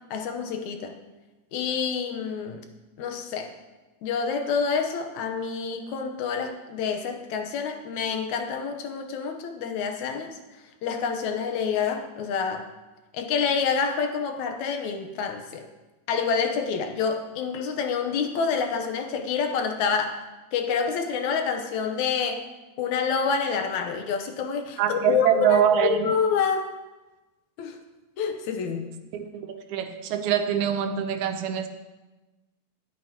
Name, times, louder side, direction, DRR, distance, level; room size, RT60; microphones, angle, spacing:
voice 1, 0.1-1.0 1.5-2.7 3.0-3.5 4.0-10.4 10.8-12.7 13.1-15.7 16.1-20.2 20.5-22.4 22.8-26.7 27.6-27.8 28.2-28.9, left 6 dB, 85° left, 5 dB, 2.3 m, -27 dB
voice 2, 24.8-26.1 29.1-31.7, right 9 dB, 85° right, 8 dB, 2.2 m, -24 dB
20.5 x 8.3 x 2.9 m, 1.1 s
omnidirectional pair, 3.3 m